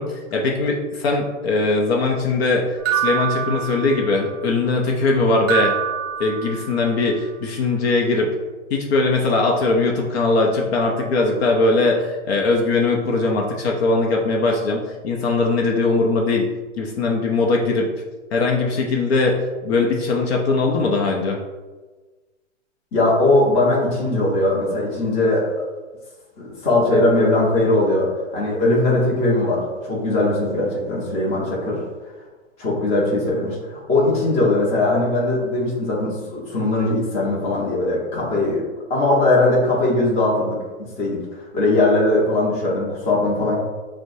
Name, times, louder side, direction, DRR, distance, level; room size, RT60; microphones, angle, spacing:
voice 1, 0.0-2.7 2.9-5.8 6.2-8.3 8.7-16.5 16.8-17.9 18.3-21.4, left 3 dB, 55° left, 0 dB, 0.6 m, -20 dB
sound 1, 2.9-4.3 5.5-6.9, right 10 dB, 20° right, 0.4 m, -25 dB
voice 2, 22.9-25.4 26.4-31.8 32.6-38.6 38.9-43.6, left 2 dB, 15° left, -5 dB, 0.8 m, -20 dB
5.9 x 2.1 x 2.6 m, 1.3 s
hypercardioid pair, 145°, 37 cm